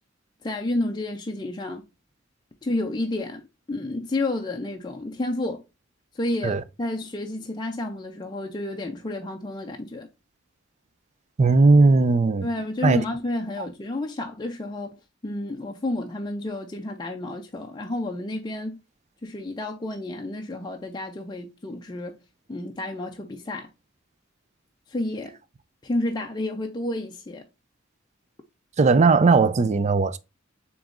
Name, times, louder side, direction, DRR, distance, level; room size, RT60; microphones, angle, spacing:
voice 1, 0.4-1.8 2.6-3.4 3.7-5.6 6.1-10.1 12.4-15.0 15.2-18.8 19.2-22.1 22.5-23.7 24.9-25.3 25.8-27.5, left 2 dB, 20° left, 0.5 m, -30 dB
voice 2, 11.4-12.5 12.8-13.0 13.6-13.7 28.8-30.2, right 3 dB, 35° right, 0.4 m, -18 dB
7.1 x 3.0 x 2.4 m
head